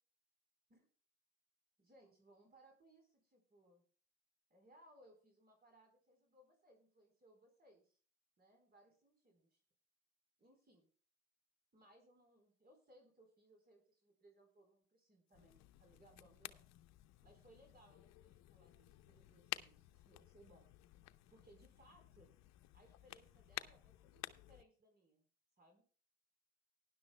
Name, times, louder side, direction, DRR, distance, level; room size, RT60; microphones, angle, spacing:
voice 1, 1.8-3.8 4.5-8.0 8.4-9.6 10.4-10.9 11.7-16.6 17.2-20.7 21.3-22.3 22.7-25.2 25.6-25.8, right 1 dB, 30° right, 3 dB, 4.1 m, -67 dB
sound 1, 15.3-24.6, left 16 dB, 60° left, 0.7 m, -53 dB
18.5 x 11.0 x 2.2 m, 0.42 s
supercardioid pair, 90°, 30 cm